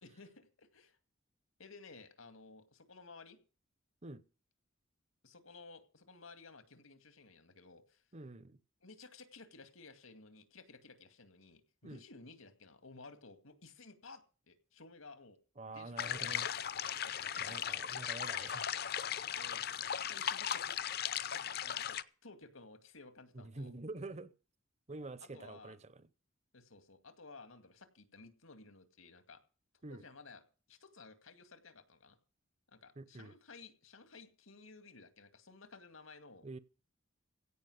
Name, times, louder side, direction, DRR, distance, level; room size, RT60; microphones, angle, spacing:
voice 1, 0.0-1.0 1.6-3.4 5.2-8.0 8.8-15.4 15.7-16.5 17.0-17.8 19.3-20.8 21.3-23.7 25.2-25.8 26.5-29.4 29.9-30.4 30.7-32.2 32.7-36.5, left 3 dB, 85° left, 2.2 m, -56 dB
voice 2, 8.1-8.6 11.8-12.0 15.6-16.5 16.9-17.0 17.4-18.6 19.3-19.4 23.3-24.3 24.9-26.1 29.8-30.0 33.0-33.3 36.4-36.6, right 2 dB, 35° right, 0.8 m, -47 dB
sound 1, 16.0-22.0, left 9 dB, 50° left, 0.6 m, -37 dB
16.5 x 5.6 x 9.4 m
head